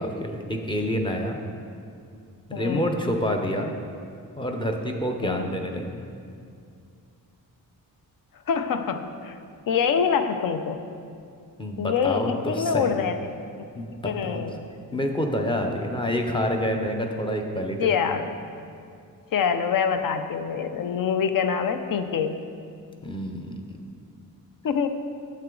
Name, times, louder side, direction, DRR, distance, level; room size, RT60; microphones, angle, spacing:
voice 1, 0.0-1.4 2.5-3.7 4.4-6.0 11.6-13.1 13.7-14.4 14.9-18.0 23.0-23.5, equal, 15° left, 3 dB, 0.5 m, -28 dB
voice 2, 2.5-2.9 5.2-5.5 8.5-9.4 9.7-10.8 11.8-13.2 14.0-14.6 17.8-18.3 19.3-22.4 24.6-24.9, left 7 dB, 65° left, 9 dB, 0.6 m, -25 dB
8.9 x 7.6 x 3.7 m, 2.4 s
wide cardioid pair, 170°, 36 cm